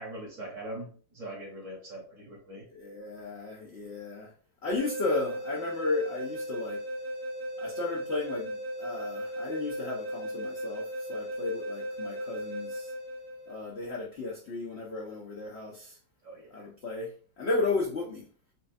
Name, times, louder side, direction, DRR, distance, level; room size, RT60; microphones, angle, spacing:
voice 1, 0.0-2.7 16.2-16.7, right 1 dB, 50° right, 1.1 m, -42 dB
voice 2, 2.7-4.3 4.6-6.8 7.6-12.9 13.5-16.0 16.5-18.3, left 3 dB, 80° left, 0.5 m, -34 dB
sound 1, 4.8-13.7, equal, 75° right, 1.3 m, -37 dB
4.4 x 2.3 x 2.6 m
omnidirectional pair, 2.1 m